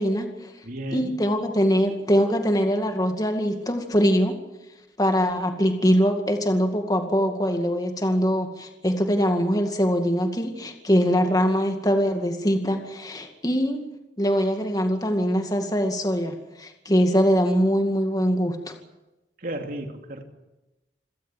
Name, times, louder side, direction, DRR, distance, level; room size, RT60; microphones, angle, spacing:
voice 1, 0.0-0.5 0.9-4.4 5.0-13.8 14.2-18.7, equal, 20° left, 5 dB, 2.2 m, -23 dB
voice 2, 0.6-1.1 19.4-20.2, right 1 dB, 50° right, 4 dB, 2.8 m, -33 dB
27.0 x 17.5 x 7.6 m, 1.0 s
head